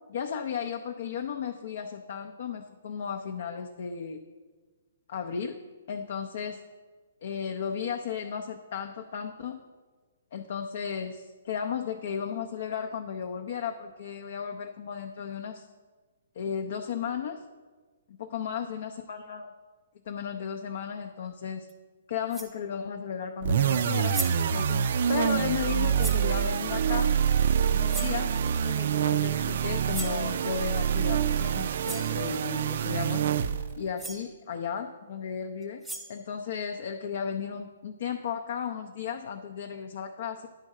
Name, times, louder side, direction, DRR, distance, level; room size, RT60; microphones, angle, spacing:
voice 1, 0.1-4.2 5.1-5.6 5.9-6.6 7.2-9.6 10.3-15.7 16.4-17.4 18.2-19.5 20.1-21.7 22.1-24.2 24.5-27.2 27.7-28.3 28.6-33.2 33.8-35.8 36.1-40.5, left 7 dB, 60° left, 5 dB, 0.5 m, -34 dB
sound 1, 21.7-21.8 22.3-22.6 23.8-23.9 24.1-24.5 26.0-26.3 27.9-28.2 29.9-30.2 31.4-31.5 31.8-32.2 33.7-33.8 34.0-34.3 35.6-36.3, right 1 dB, 5° right, 0.6 m, -38 dB
sound 2, 23.4-33.8, right 8 dB, 60° right, 0.3 m, -26 dB
9.8 x 3.8 x 6.3 m, 1.4 s
hypercardioid pair, 140°, 0 cm